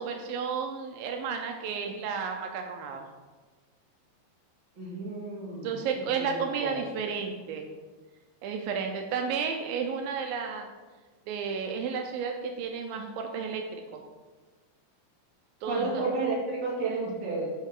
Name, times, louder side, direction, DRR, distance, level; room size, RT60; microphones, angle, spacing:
voice 1, 0.0-3.1 5.6-7.7 8.4-10.7 11.3-14.0 15.6-16.1, right 6 dB, 85° right, 3 dB, 2.3 m, -32 dB
voice 2, 4.8-6.8 15.6-17.5, right 3 dB, 35° right, -4 dB, 2.1 m, -32 dB
11.0 x 4.6 x 3.8 m, 1.3 s
omnidirectional pair, 4.2 m